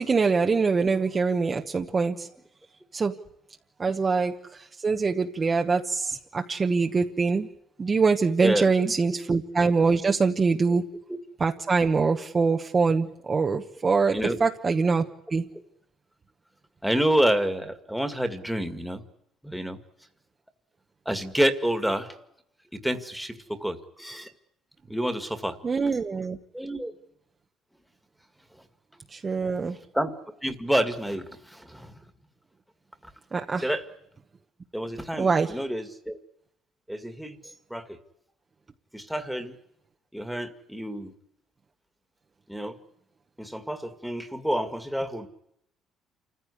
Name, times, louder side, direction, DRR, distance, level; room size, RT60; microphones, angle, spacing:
voice 1, 0.0-2.3 2.9-3.1 3.8-7.5 7.8-10.9 11.4-15.4 25.6-26.4 29.1-29.8 33.3-33.7 35.2-35.5, right 4 dB, 25° right, 4 dB, 1.1 m, -24 dB
voice 2, 8.4-8.9 10.7-10.8 14.1-14.4 16.8-19.0 19.4-19.8 21.1-22.1 22.7-24.3 24.9-25.6 26.5-26.9 29.9-30.1 30.4-31.9 33.6-33.8 34.7-36.2 36.9-37.4 37.7-38.0 38.9-39.5 40.1-41.1 42.5-42.8 43.4-45.3, equal, ahead, 7 dB, 2.0 m, -28 dB
28.0 x 15.0 x 9.7 m, 0.78 s
cardioid pair, 145°, 0 cm